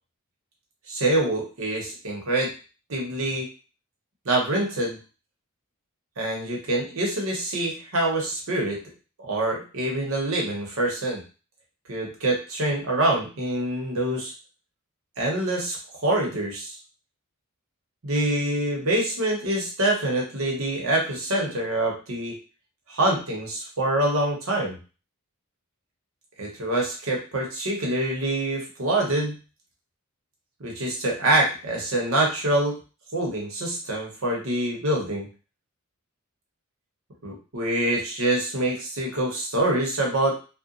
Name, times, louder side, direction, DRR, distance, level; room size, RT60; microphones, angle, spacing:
voice 1, 0.9-2.5 2.9-3.5 4.2-5.0 6.2-8.8 9.2-11.2 11.9-14.3 15.2-15.8 16.0-16.7 18.0-22.4 22.9-24.8 26.4-29.4 30.6-32.7 33.1-35.3 37.2-40.4, right 1 dB, 65° right, -1 dB, 0.9 m, -25 dB
2.8 x 2.1 x 2.5 m, 0.34 s
head